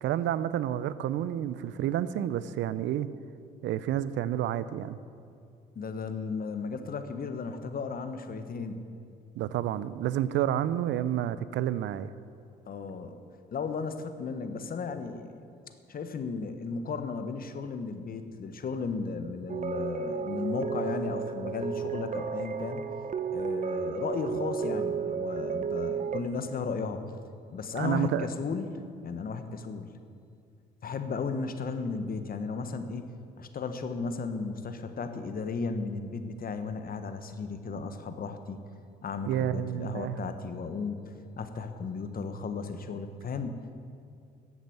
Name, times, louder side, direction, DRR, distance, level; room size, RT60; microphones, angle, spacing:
voice 1, 0.0-3.1 3.6-5.0 9.4-12.1 27.7-28.3 39.3-40.3, right 11 dB, 70° right, 15 dB, 0.6 m, -30 dB
voice 2, 5.7-8.8 12.7-13.2 13.5-15.3 15.9-22.8 23.3-27.0 27.5-29.9 30.8-33.1 33.4-38.6 39.0-43.6, left 4 dB, 50° left, 9 dB, 1.3 m, -35 dB
sound 1, 19.5-26.2, right 6 dB, 40° right, 0.9 m, -33 dB
14.0 x 8.2 x 7.9 m, 2.4 s
supercardioid pair, 70°, 20 cm